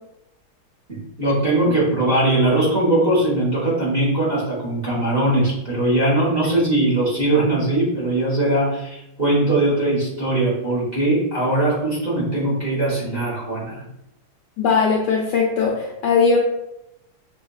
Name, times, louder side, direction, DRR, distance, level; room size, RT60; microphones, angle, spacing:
voice 1, 0.9-13.8, right 1 dB, 30° right, -5 dB, 1.3 m, -20 dB
voice 2, 14.6-16.4, left 5 dB, 75° left, -1 dB, 1.0 m, -19 dB
6.1 x 2.7 x 2.3 m, 0.86 s
omnidirectional pair, 2.3 m